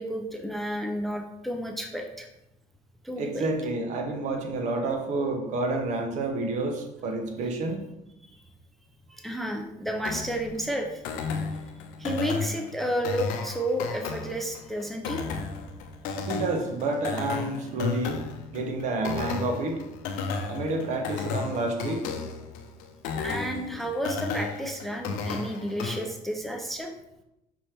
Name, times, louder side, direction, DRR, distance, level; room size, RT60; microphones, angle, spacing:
voice 1, 0.0-2.3 3.0-3.5 9.1-11.3 12.0-15.2 20.4-20.5 23.2-26.9, equal, ahead, 2 dB, 0.4 m, -31 dB
voice 2, 3.2-7.8 16.3-18.2 18.5-19.8 20.5-22.1, right 2 dB, 60° right, 4 dB, 0.8 m, -29 dB
sound 1, 10.0-26.0, left 5 dB, 90° left, 0.5 m, -34 dB
5.3 x 2.9 x 3.3 m, 0.89 s
cardioid pair, 125°, 14 cm